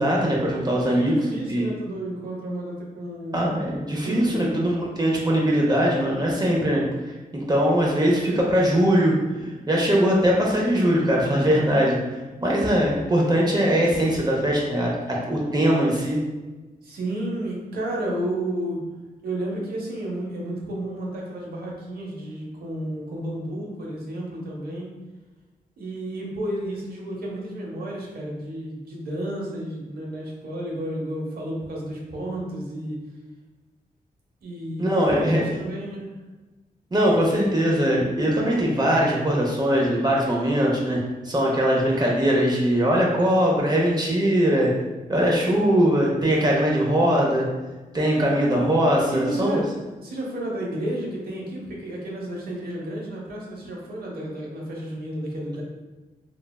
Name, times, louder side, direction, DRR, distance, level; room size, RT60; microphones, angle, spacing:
voice 1, 0.0-1.2 1.5-1.7 3.3-9.2 9.7-12.0 12.4-16.2 34.8-35.4 36.9-41.0 41.2-44.7 45.1-47.5 47.9-49.6, equal, 25° right, -3 dB, 0.5 m, -21 dB
voice 2, 0.9-4.7 16.8-18.8 19.2-24.9 25.8-33.0 34.4-36.1 48.1-48.6 49.1-55.6, right 1 dB, 80° right, -2 dB, 0.7 m, -32 dB
3.2 x 2.2 x 2.2 m, 1.2 s
cardioid pair, 90°, 16 cm